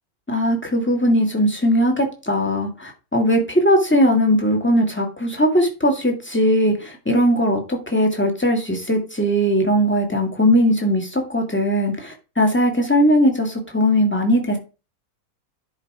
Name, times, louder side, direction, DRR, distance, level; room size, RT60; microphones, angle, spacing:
voice 1, 0.3-14.6, equal, 5° left, 2 dB, 1.9 m, -19 dB
10.5 x 4.4 x 4.8 m, 0.32 s
omnidirectional pair, 1.6 m